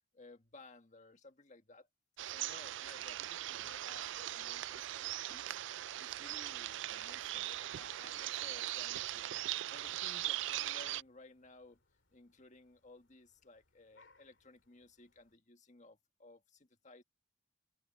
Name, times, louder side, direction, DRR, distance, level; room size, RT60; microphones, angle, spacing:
voice 1, 0.1-1.9 2.2-5.6 6.0-9.4 9.7-11.8 12.1-17.0, left 3 dB, 40° left, 1.7 m, -58 dB
sound 1, 2.2-11.0, right 14 dB, 70° right, 0.4 m, -40 dB
sound 2, 3.1-15.4, left 3 dB, 70° left, 2.9 m, -67 dB
head